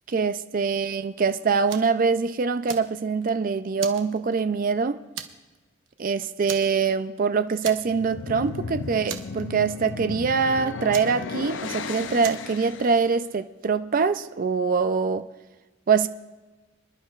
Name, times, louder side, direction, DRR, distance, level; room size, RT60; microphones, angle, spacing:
voice 1, 0.1-5.0 6.0-15.2 15.9-16.1, right 5 dB, 45° right, 0.4 m, -24 dB
Fire, 1.7-2.0 2.4-3.3 3.8-4.7 5.2-5.6 5.9-6.0 6.5-7.2 7.6-8.2 8.5-8.6 9.1-9.9 10.9-11.7 12.2-12.6, right 8 dB, 70° right, 0.9 m, -38 dB
sound 1, 7.8-13.2, left 4 dB, 65° left, 0.5 m, -35 dB
26.0 x 11.0 x 2.4 m
head